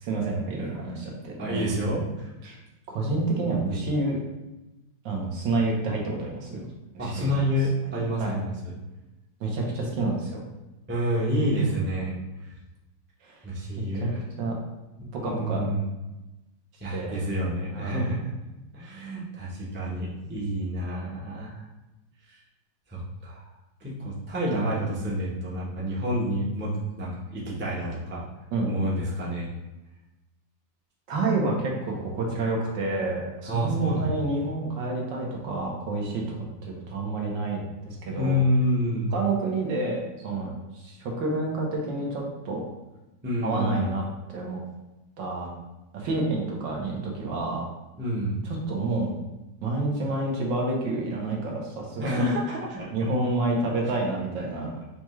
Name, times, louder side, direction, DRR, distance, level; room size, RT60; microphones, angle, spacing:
voice 1, 0.0-1.8 2.4-2.6 2.9-4.2 5.0-6.7 6.9-7.3 8.2-8.3 9.4-10.4 13.2-13.4 13.8-14.1 14.4-14.5 15.1-15.6 16.9-17.2 17.7-18.1 28.5-28.7 31.1-36.4 36.6-37.6 38.0-38.4 39.1-42.6 43.4-44.0 44.3-44.6 45.2-45.5 45.9-47.6 48.4-49.1 49.6-52.3 52.9-54.7, right 2 dB, 80° right, -1 dB, 1.6 m, -29 dB
voice 2, 1.4-2.5 7.0-8.7 10.9-12.1 13.4-14.2 15.0-15.9 16.8-18.3 18.7-21.6 22.3-22.4 22.9-23.4 23.8-28.2 28.6-29.5 33.5-34.2 38.2-39.1 43.2-43.9 48.0-48.4 52.0-53.1, equal, 15° right, -6 dB, 0.3 m, -28 dB
5.9 x 2.3 x 3.0 m, 1.0 s
omnidirectional pair, 2.0 m